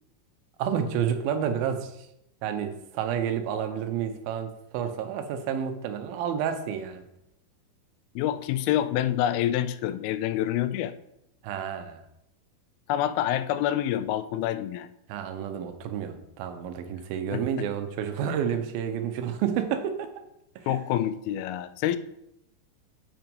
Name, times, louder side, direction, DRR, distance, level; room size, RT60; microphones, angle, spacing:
voice 1, 0.6-2.1 2.4-7.0 11.4-12.0 15.1-20.1 20.6-20.8, right 8 dB, 80° right, 8 dB, 2.5 m, -30 dB
voice 2, 8.2-10.9 12.9-14.9 17.3-17.7 20.7-22.0, left 12 dB, 85° left, 13 dB, 2.4 m, -27 dB
7.8 x 5.8 x 5.3 m, 0.81 s
omnidirectional pair, 4.3 m